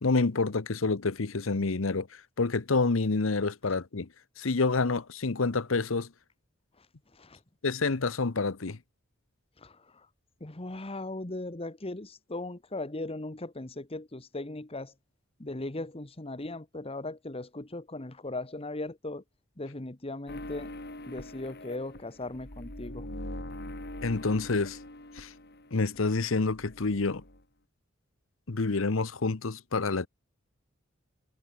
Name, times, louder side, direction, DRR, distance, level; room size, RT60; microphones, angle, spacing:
voice 1, 0.0-2.1 2.4-4.1 4.4-6.1 7.6-8.8 24.0-24.8 25.2-25.3 25.7-27.2 28.5-30.1, left 3 dB, 80° left, 0.9 m, -28 dB
voice 2, 9.6-10.1 10.4-14.9 15.4-19.2 19.6-20.7 21.1-23.1, left 2 dB, 30° left, 1.4 m, -38 dB
sound 1, 20.3-26.0 26.2-27.4, left 1 dB, 55° left, 5.3 m, -43 dB
head